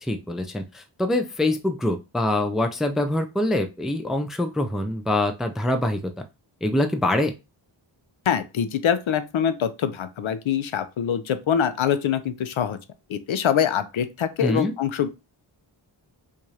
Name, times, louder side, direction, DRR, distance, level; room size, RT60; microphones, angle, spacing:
voice 1, 0.0-6.0 6.6-7.3 14.4-14.7, left 1 dB, ahead, 0.3 m, -24 dB
voice 2, 8.3-12.8 13.1-15.1, left 8 dB, 80° left, 0.6 m, -24 dB
4.6 x 2.5 x 2.8 m
wide cardioid pair, 110°, 47 cm